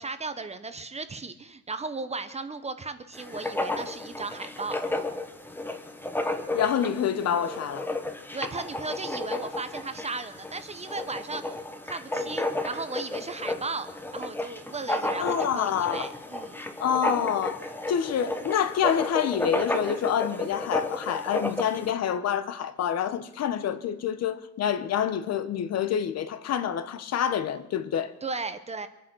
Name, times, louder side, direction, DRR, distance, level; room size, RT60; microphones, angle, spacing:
voice 1, 0.0-4.8 8.3-13.9 14.1-16.6 28.2-28.9, right 3 dB, 20° right, 0.8 m, -36 dB
Writing, 3.1-21.9, left 2 dB, 5° left, 1.1 m, -33 dB
voice 2, 6.5-7.9 15.2-16.1 16.8-17.6 17.9-28.1, left 8 dB, 50° left, 1.0 m, -27 dB
24.0 x 9.7 x 6.2 m
cardioid pair, 145°, 34 cm